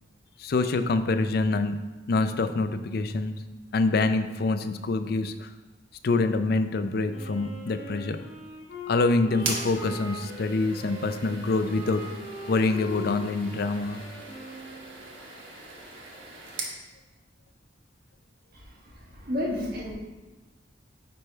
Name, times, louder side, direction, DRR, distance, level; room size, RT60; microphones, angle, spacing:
voice 1, 0.4-1.8 2.1-3.3 3.7-5.5 6.0-8.2 8.9-12.0 12.5-14.0, left 3 dB, 55° left, 9 dB, 0.4 m, -25 dB
Wind instrument woodwind instrument, 7.1-15.2, left 2 dB, 70° left, 2.2 m, -41 dB
sound 1, 9.4-16.8, right 3 dB, 85° right, 1.2 m, -40 dB
voice 2, 18.5-19.9, left 1 dB, 50° right, -2 dB, 1.3 m, -32 dB
9.4 x 3.3 x 4.4 m, 1.1 s
head